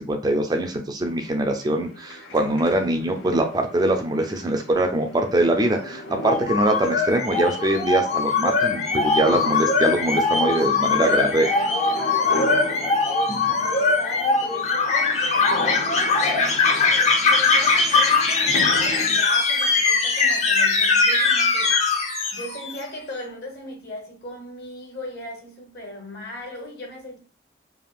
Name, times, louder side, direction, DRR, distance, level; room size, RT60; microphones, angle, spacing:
voice 1, 0.0-11.5 13.3-13.4, right 1 dB, 20° right, 0.3 m, -23 dB
sound 1, 1.0-19.2, left 1 dB, 80° left, 0.6 m, -37 dB
sound 2, 6.2-22.8, left 4 dB, 40° left, 0.5 m, -21 dB
voice 2, 10.8-16.6 17.3-21.9 22.3-27.2, left 1 dB, 55° left, 1.1 m, -38 dB
3.4 x 2.4 x 2.3 m
head